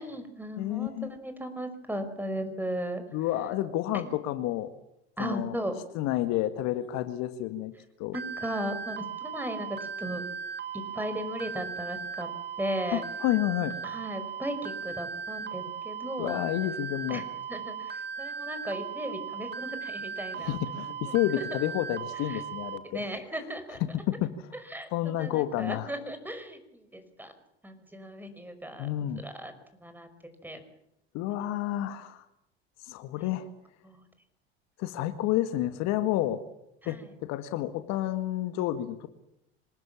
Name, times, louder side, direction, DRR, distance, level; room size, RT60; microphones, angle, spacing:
voice 1, 0.0-3.0 3.9-4.1 5.2-5.7 8.1-10.3 10.7-12.3 12.6-13.0 13.8-16.4 17.1-21.6 22.3-22.4 22.9-23.8 24.5-24.9 25.2-27.3 27.6-28.9 29.2-29.5 29.8-30.1 30.4-30.6 33.2-33.3 33.8-34.1 36.8-37.1, equal, 5° right, 9 dB, 5.4 m, -36 dB
voice 2, 0.6-1.1 3.1-4.7 5.2-5.5 6.0-7.7 8.0-8.2 12.9-13.8 16.2-17.2 20.3-23.0 23.8-24.3 24.9-25.9 28.8-29.3 31.1-32.2 32.8-33.5 34.8-36.4 36.9-39.1, left 13 dB, 55° left, 10 dB, 1.8 m, -30 dB
sound 1, 8.1-22.8, right 6 dB, 35° right, 2.3 m, -37 dB
26.5 x 19.5 x 7.4 m, 0.80 s
hypercardioid pair, 75°, 32 cm